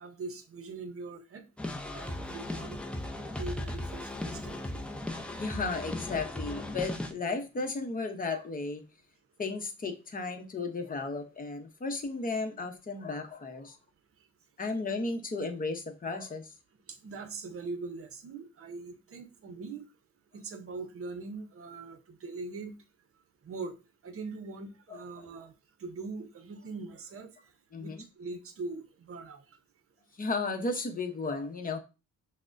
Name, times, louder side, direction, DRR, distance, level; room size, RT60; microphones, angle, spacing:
voice 1, 0.0-1.4 1.9-2.8 3.2-4.8 16.9-19.8 20.3-22.8 23.4-23.8 24.0-25.5 25.8-27.5 27.8-29.6, right 3 dB, 50° right, 0.7 m, -42 dB
sound 1, 1.6-7.1, left 1 dB, 5° left, 0.5 m, -37 dB
voice 2, 5.4-8.8 9.4-13.8 14.6-16.5 27.7-28.0 30.2-31.8, left 3 dB, 30° left, 0.8 m, -34 dB
5.9 x 2.1 x 2.6 m
cardioid pair, 90°, 30 cm